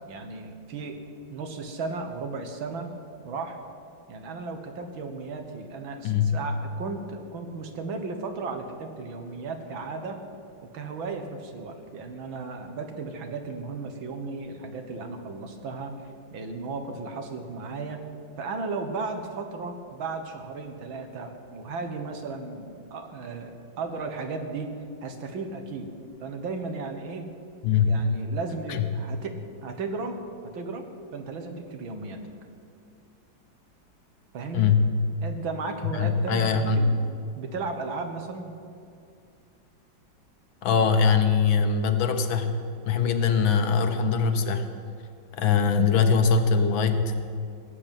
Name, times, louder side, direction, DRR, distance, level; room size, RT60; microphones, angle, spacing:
voice 1, 0.1-1.0 1.3-2.9 3.2-3.6 4.1-10.2 10.7-15.9 16.3-18.0 18.4-24.7 25.0-25.9 26.2-27.3 27.8-30.3 30.5-30.9 31.1-32.2 34.3-34.7 35.2-37.0 37.4-38.5, right 4 dB, 80° right, 6 dB, 2.2 m, -35 dB
voice 2, 6.0-6.4 27.6-28.0 28.7-28.9 34.5-34.9 35.8-36.8 40.6-42.5 42.9-44.7 45.3-47.2, left 5 dB, 80° left, 8 dB, 1.8 m, -22 dB
17.5 x 7.6 x 9.1 m, 2.4 s
omnidirectional pair, 2.1 m